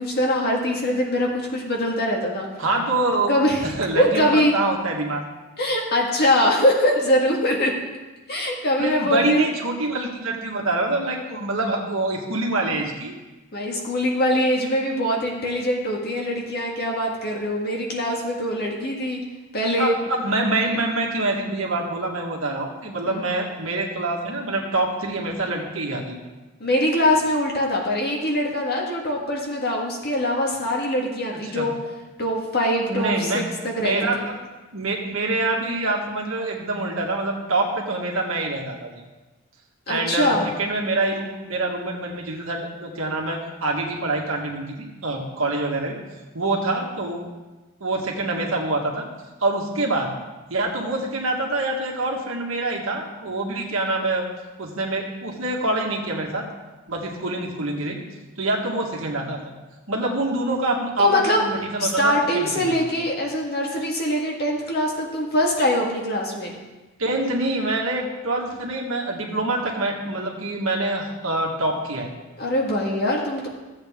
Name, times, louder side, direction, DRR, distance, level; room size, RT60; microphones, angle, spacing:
voice 1, 0.0-2.5 3.3-4.5 5.6-7.7 8.3-9.4 13.5-19.2 19.5-19.9 23.1-23.3 26.6-31.8 32.2-34.1 39.9-40.5 61.0-61.4 61.8-66.5 72.4-73.5, left 1 dB, 45° left, -2 dB, 1.7 m, -23 dB
voice 2, 2.6-3.3 3.6-5.3 6.2-6.3 8.8-13.1 19.8-26.2 31.5-31.7 32.9-33.4 33.8-34.2 34.7-39.0 39.9-46.0 46.3-47.2 47.8-49.0 49.4-50.1 50.5-54.2 54.6-56.4 56.9-58.0 58.4-59.4 59.9-62.8 67.0-72.1, right 2 dB, 70° right, 0 dB, 1.6 m, -25 dB
14.5 x 8.1 x 3.6 m, 1.2 s
head